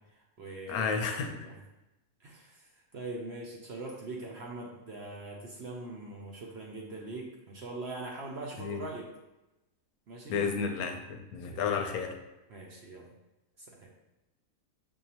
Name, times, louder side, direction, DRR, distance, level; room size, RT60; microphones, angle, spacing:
voice 1, 0.0-1.6 2.2-9.1 10.1-10.5 11.4-11.7 12.5-13.1 13.6-13.9, right 2 dB, 55° right, -2 dB, 0.8 m, -42 dB
voice 2, 0.7-1.4 8.6-8.8 10.3-12.1, left 5 dB, 80° left, 4 dB, 1.0 m, -32 dB
6.9 x 2.7 x 2.8 m, 0.99 s
omnidirectional pair, 1.6 m